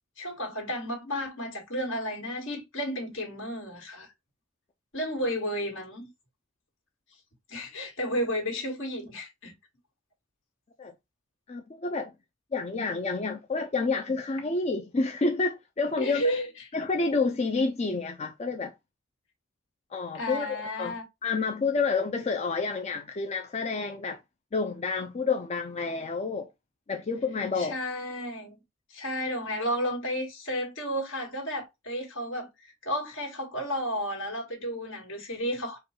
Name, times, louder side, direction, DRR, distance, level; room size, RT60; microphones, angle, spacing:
voice 1, 0.2-4.1 4.9-6.1 7.5-9.5 16.0-16.5 20.1-21.0 27.5-28.6 28.9-35.8, equal, 70° left, 2.0 m, -32 dB
voice 2, 11.5-12.1 12.5-16.2 16.7-18.7 19.9-24.2 24.5-26.5 26.9-27.8, left 4 dB, 30° left, 0.4 m, -29 dB
5.0 x 2.3 x 4.4 m
head